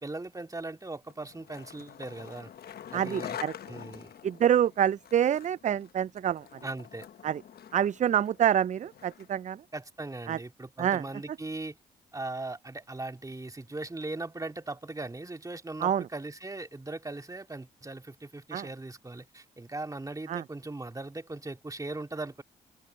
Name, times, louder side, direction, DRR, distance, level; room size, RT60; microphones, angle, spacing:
voice 1, 0.0-2.5 2.9-3.4 3.7-4.1 6.6-7.1 9.7-11.8 12.1-22.4, right 2 dB, 20° right, 2.5 m, -39 dB
Skateboard, 1.1-9.4, left 9 dB, 60° left, 1.3 m, -45 dB
voice 2, 2.9-3.5 4.2-6.5 7.2-7.4 7.7-9.6 10.3-10.4 10.8-11.0 15.8-16.1 18.5-18.7 20.3-20.4, right 10 dB, 40° right, 0.4 m, -26 dB
open air
hypercardioid pair, 50°, 18 cm